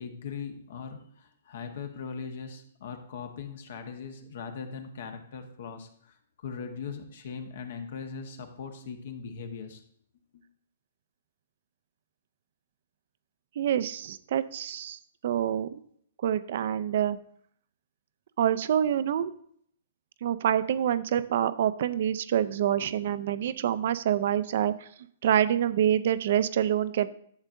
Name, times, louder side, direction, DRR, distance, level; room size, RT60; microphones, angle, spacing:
voice 1, 0.0-9.8 10.3-10.4, left 6 dB, 65° left, 6 dB, 1.2 m, -40 dB
voice 2, 13.6-15.8 16.2-17.2 18.4-19.3 20.2-24.9 25.2-27.1, right 10 dB, 60° right, 14 dB, 0.5 m, -26 dB
11.0 x 7.2 x 2.6 m, 0.64 s
hypercardioid pair, 120°, 0 cm